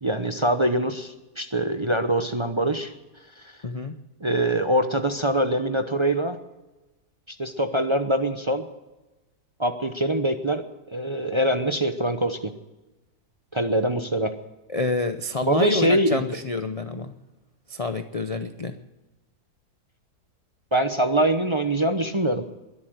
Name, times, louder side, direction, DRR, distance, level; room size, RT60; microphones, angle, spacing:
voice 1, 0.0-2.9 3.4-3.5 4.2-6.4 7.3-8.7 9.6-12.5 13.5-14.3 15.5-16.2 20.7-22.4, right 1 dB, 30° right, 7 dB, 0.6 m, -24 dB
voice 2, 3.6-4.0 14.7-17.1 17.7-18.8, left 3 dB, 65° left, 8 dB, 0.3 m, -28 dB
21.5 x 8.4 x 7.7 m, 1.1 s
omnidirectional pair, 1.8 m